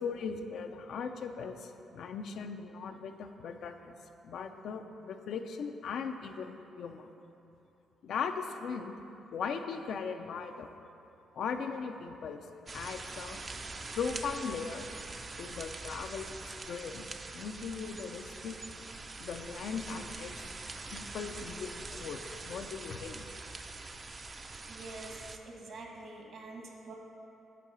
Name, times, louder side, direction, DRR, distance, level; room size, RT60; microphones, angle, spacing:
voice 1, 0.0-3.9 4.2-7.1 8.0-9.0 9.3-10.7 11.3-12.4 12.7-13.4 13.9-14.9 15.4-17.0 17.3-18.6 19.2-20.3 20.9-23.2, left 5 dB, 70° left, 6 dB, 0.4 m, -38 dB
sound 1, 12.7-25.4, right 3 dB, 30° right, 0.4 m, -44 dB
voice 2, 24.7-26.9, right 3 dB, 60° right, 1 dB, 1.2 m, -46 dB
8.4 x 3.8 x 6.1 m, 2.8 s
cardioid pair, 90°, 0 cm